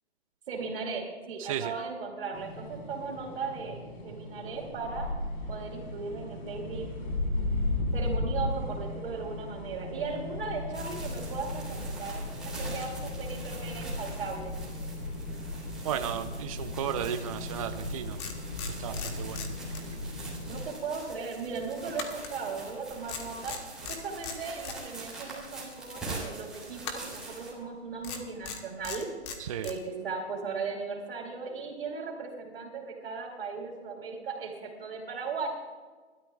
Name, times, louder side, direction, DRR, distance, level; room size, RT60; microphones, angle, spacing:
voice 1, 0.5-5.1 5.5-6.9 7.9-14.5 20.4-23.6 23.9-29.1 29.6-35.5, right 4 dB, 55° right, -2 dB, 3.5 m, -37 dB
voice 2, 1.4-1.7 15.8-18.2 18.6-19.5 29.4-29.7, right 9 dB, 30° right, 8 dB, 0.6 m, -34 dB
sound 1, 2.3-20.7, left 2 dB, 45° left, 4.0 m, -36 dB
sound 2, 10.7-27.5, right 2 dB, ahead, 3.5 m, -44 dB
sound 3, 18.2-20.2 20.5-20.7 21.9-22.8 23.1-24.8 26.8-27.3 28.0-29.8, left 6 dB, 25° left, 1.5 m, -39 dB
30.0 x 13.0 x 2.4 m, 1.4 s
hypercardioid pair, 150°, 33 cm